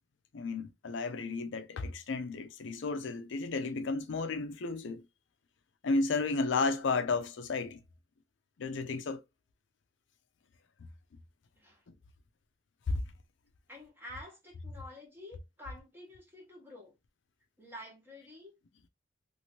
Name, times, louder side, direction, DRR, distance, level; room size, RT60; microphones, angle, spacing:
voice 1, 0.3-5.0 5.8-7.8 8.6-9.2 12.9-13.0, left 3 dB, 70° left, 0.4 m, -33 dB
voice 2, 13.7-16.9 17.6-18.5, left 1 dB, 10° right, 1.1 m, -49 dB
2.9 x 2.6 x 2.9 m
head